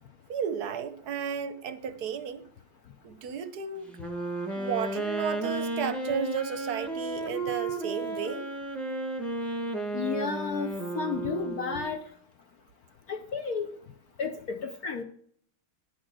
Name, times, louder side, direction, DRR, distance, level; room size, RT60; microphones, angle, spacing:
voice 1, 0.3-2.4 3.0-3.9 4.5-8.4, right 7 dB, 65° right, 1.1 m, -33 dB
Wind instrument woodwind instrument, 3.9-12.0, right 2 dB, ahead, 1.3 m, -33 dB
voice 2, 9.9-12.0 13.1-13.7 14.2-15.0, left 5 dB, 60° left, 1.0 m, -32 dB
10.5 x 6.3 x 6.2 m
omnidirectional pair, 2.3 m